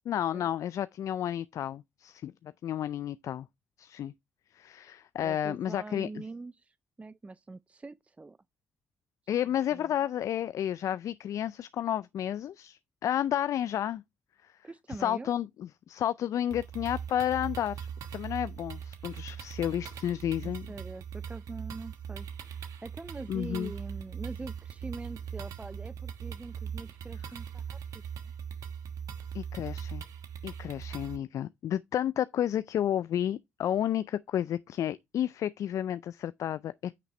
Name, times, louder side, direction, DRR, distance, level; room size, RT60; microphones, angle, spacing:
voice 1, 0.1-3.5 3.8-4.1 4.5-6.1 9.3-14.0 14.4-14.5 15.0-20.7 23.3-23.7 29.3-30.0 30.4-36.9, left 10 dB, 65° left, 0.3 m, -31 dB
voice 2, 5.2-8.4 9.7-9.9 14.6-15.3 20.4-22.5 22.8-27.8, right 3 dB, 20° right, 0.4 m, -43 dB
sound 1, 16.5-31.2, right 8 dB, 70° right, 1.2 m, -40 dB
9.1 x 5.9 x 3.1 m
hypercardioid pair, 45°, 6 cm